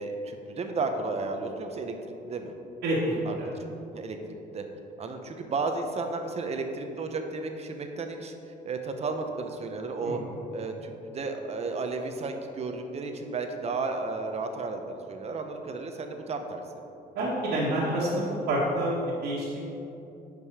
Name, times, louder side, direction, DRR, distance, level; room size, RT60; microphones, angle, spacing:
voice 1, 0.0-2.5 3.2-3.6 3.9-4.6 5.0-8.3 8.6-10.2 10.5-16.6, right 3 dB, 40° right, 5 dB, 1.0 m, -33 dB
voice 2, 2.8-3.5 10.0-10.2 17.2-18.2 18.5-18.9 19.2-19.6, right 1 dB, 80° right, -8 dB, 2.0 m, -27 dB
11.0 x 5.4 x 4.9 m, 2.9 s
cardioid pair, 110°, 17 cm